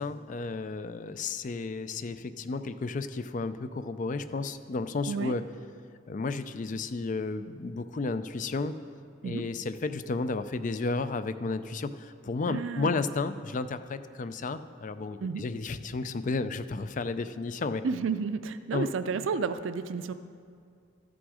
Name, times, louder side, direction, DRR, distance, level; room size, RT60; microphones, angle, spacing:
voice 1, 0.0-5.4 6.1-8.7 9.2-17.8 18.7-18.9, left 3 dB, 40° left, 11 dB, 0.4 m, -32 dB
voice 2, 12.5-13.0 15.2-15.4 17.8-20.1, right 5 dB, 85° right, 11 dB, 0.4 m, -31 dB
13.5 x 6.2 x 4.8 m, 2.2 s
head